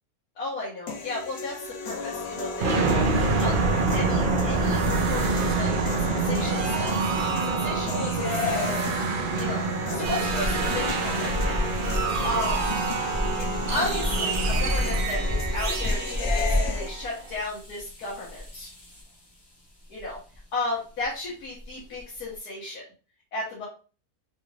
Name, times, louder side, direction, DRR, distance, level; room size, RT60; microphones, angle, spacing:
voice 1, 0.4-3.5 3.9-7.0 7.4-8.7 9.3-9.7 9.9-11.6 12.2-12.6 13.3-18.7 19.9-20.2 20.5-22.8 23.3-23.7, left 2 dB, 85° left, -7 dB, 1.7 m, -34 dB
sound 1, 0.9-16.9, left 4 dB, 60° left, 0.8 m, -34 dB
sound 2, 2.6-17.3, right 4 dB, 70° right, 0.5 m, -27 dB
sound 3, 10.0-19.2 20.0-20.4 21.0-21.1 21.6-22.3, left 1 dB, 20° left, 0.8 m, -30 dB
4.0 x 2.4 x 3.2 m, 0.36 s
omnidirectional pair, 1.6 m